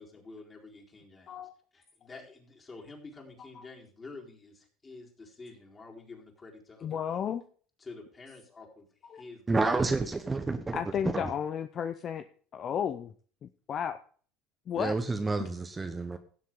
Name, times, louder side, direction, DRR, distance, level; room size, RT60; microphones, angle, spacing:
voice 1, 0.0-1.4 1.7-7.0 7.8-8.9 9.1-10.1, left 3 dB, 25° left, 4.1 m, -49 dB
voice 2, 6.8-7.4 9.1-9.2 10.7-12.2 12.5-13.1 13.4-14.0 14.7-15.0 15.4-15.5, left 8 dB, 45° left, 0.7 m, -33 dB
voice 3, 9.5-11.3 14.8-16.2, right 3 dB, 20° right, 1.2 m, -30 dB
16.5 x 7.5 x 3.8 m
supercardioid pair, 95°, 0 cm